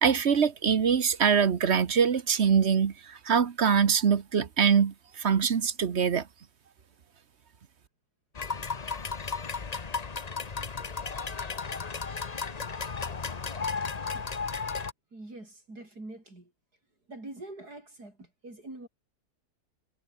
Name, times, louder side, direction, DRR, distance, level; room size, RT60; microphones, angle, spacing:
voice 1, 0.0-6.3, right 7 dB, 50° right, 1.3 m, -24 dB
sound 1, 8.3-14.9, left 5 dB, 30° left, 0.9 m, -34 dB
voice 2, 15.1-16.5 17.1-18.9, right 2 dB, 80° right, 8.0 m, -44 dB
omnidirectional pair, 1.7 m